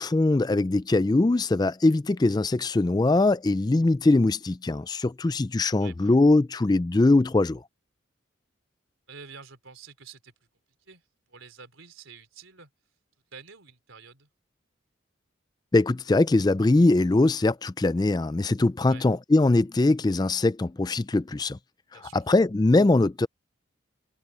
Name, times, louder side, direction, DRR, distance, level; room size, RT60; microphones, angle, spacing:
voice 1, 0.0-7.6 15.7-21.6 21.9-23.3, left 2 dB, 20° left, 0.3 m, -22 dB
voice 2, 5.8-6.2 9.1-10.3 10.8-11.0 11.3-12.7 13.3-14.3 18.9-19.0 21.9-22.2, right 5 dB, 85° right, 3.8 m, -48 dB
head